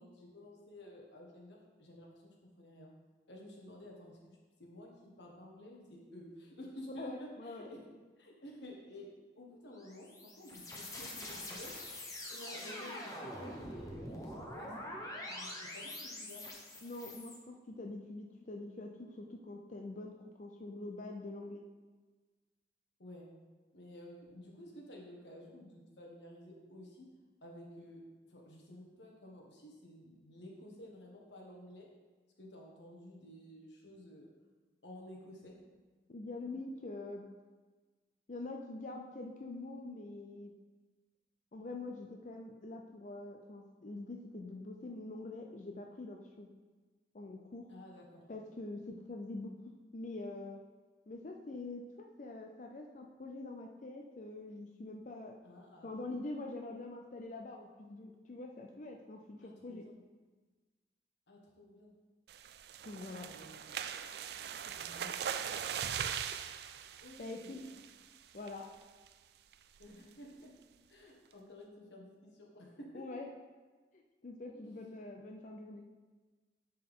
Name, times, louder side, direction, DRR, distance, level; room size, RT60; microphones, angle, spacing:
voice 1, 0.0-2.9 3.3-7.8 8.2-9.1 9.4-11.7 12.3-14.9 15.3-16.4 23.0-23.3 23.7-27.0 27.4-28.0 28.3-31.9 32.4-34.3 34.8-35.6 47.7-48.3 55.4-55.9 59.4-60.0 61.3-61.9 63.0-63.8 64.7-65.6 67.0-67.2 67.4-67.7 69.8-70.5 70.9-73.0 74.5-74.8, left 1 dB, 85° left, -1 dB, 1.5 m, -52 dB
voice 2, 7.0-7.7 16.8-20.1 20.4-21.6 36.1-37.2 38.3-40.5 41.5-46.5 47.1-47.7 48.3-49.5 49.9-50.6 51.1-55.3 55.8-59.9 62.8-63.3 67.2-67.6 68.3-68.7 72.9-73.3 73.9-75.8, left 2 dB, 45° left, 2 dB, 0.5 m, -45 dB
sound 1, 9.7-17.4, left 1 dB, 20° left, 1.0 m, -45 dB
sound 2, 62.3-68.1 68.5-68.7 69.1-69.2 69.5-69.8, right 8 dB, 65° right, 0.3 m, -40 dB
10.5 x 4.5 x 3.6 m, 1.3 s
head